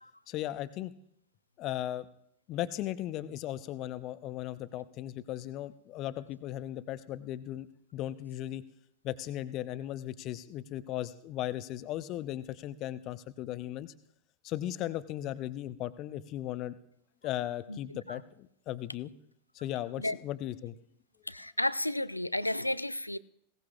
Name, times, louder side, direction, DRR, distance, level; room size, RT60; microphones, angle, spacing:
voice 1, 0.3-0.9 1.6-2.0 2.5-7.7 7.9-8.6 9.0-13.9 14.4-16.8 17.2-19.1 19.5-20.8, left 13 dB, 35° left, 14 dB, 0.7 m, -37 dB
voice 2, 21.3-23.2, left 1 dB, 85° left, 17 dB, 0.5 m, -32 dB
20.0 x 18.0 x 2.4 m, 0.69 s
figure-of-eight pair, 90°, 0 cm